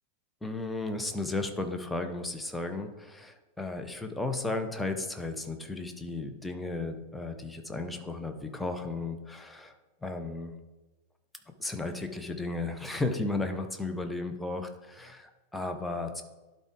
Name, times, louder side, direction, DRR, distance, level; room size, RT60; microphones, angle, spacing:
voice 1, 0.4-9.7 10.0-10.5 11.6-16.2, left 2 dB, 5° left, 5 dB, 0.9 m, -34 dB
11.5 x 4.1 x 3.8 m, 1.1 s
figure-of-eight pair, 90°, 0 cm